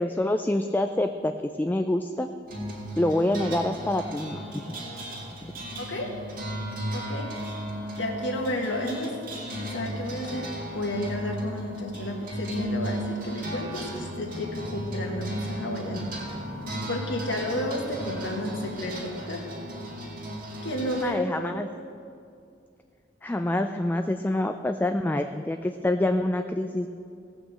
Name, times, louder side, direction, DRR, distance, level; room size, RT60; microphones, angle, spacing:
voice 1, 0.0-1.3 1.6-2.3 3.0-4.6 5.4-5.5 21.0-21.7 23.2-26.9, left 1 dB, 10° left, 7 dB, 0.3 m, -26 dB
sound 1, 2.5-21.0, equal, 45° right, 2.3 m, -35 dB
voice 2, 5.8-6.1 6.9-7.3 8.0-9.2 9.7-10.5 10.7-16.1 16.9-19.4 20.6-21.3, left 1 dB, 70° left, 1 dB, 1.7 m, -32 dB
17.0 x 6.1 x 7.4 m, 2.4 s
head